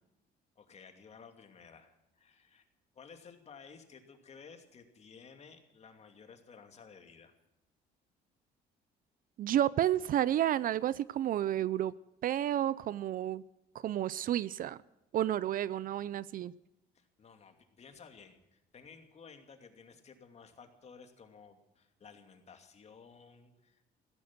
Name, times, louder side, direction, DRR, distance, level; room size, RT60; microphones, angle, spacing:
voice 1, 0.6-2.7 2.9-7.3 16.9-23.8, left 5 dB, 40° left, 2.7 m, -55 dB
voice 2, 9.4-11.9 12.2-13.4 13.7-14.8 15.1-16.5, right 11 dB, 55° right, 0.6 m, -31 dB
15.5 x 14.5 x 6.1 m
cardioid pair, 110°, 17 cm